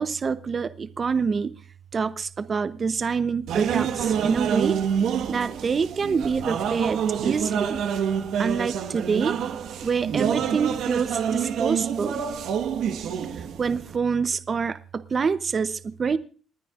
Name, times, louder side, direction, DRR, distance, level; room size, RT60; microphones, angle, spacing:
voice 1, 0.0-1.5 1.9-4.8 5.3-7.8 8.4-9.4 9.8-12.2 13.6-16.2, right 5 dB, 40° right, 13 dB, 0.8 m, -26 dB
sound 1, 3.5-13.9, right 8 dB, 80° right, 1.3 m, -27 dB
28.0 x 9.9 x 2.5 m, 0.38 s
cardioid pair, 90°, 0 cm